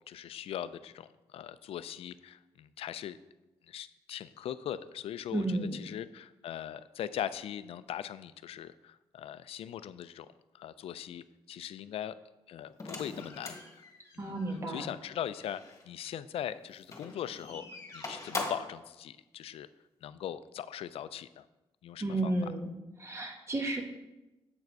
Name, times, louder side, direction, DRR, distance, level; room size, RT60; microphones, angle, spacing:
voice 1, 0.1-3.2 3.7-10.3 10.5-12.2 12.5-13.6 14.1-14.4 14.7-17.7 17.9-19.7 20.0-21.5 21.8-22.3, left 10 dB, 70° left, 14 dB, 0.4 m, -40 dB
voice 2, 5.3-5.8 14.2-14.9 22.0-22.7 23.0-23.8, right 2 dB, 25° right, 3 dB, 1.3 m, -32 dB
sound 1, 12.8-15.8 16.8-18.8, left 3 dB, 30° left, 1.6 m, -42 dB
7.6 x 4.7 x 4.6 m, 1.0 s
cardioid pair, 80°, 10 cm